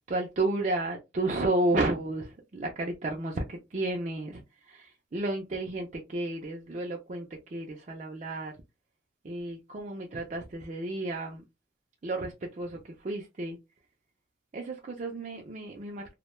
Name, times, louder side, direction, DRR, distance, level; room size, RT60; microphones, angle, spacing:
voice 1, 0.1-4.4 4.7-8.5 9.2-11.4 12.0-13.6 14.5-16.1, right 2 dB, 40° right, 0.4 m, -32 dB
2.2 x 2.1 x 2.9 m
head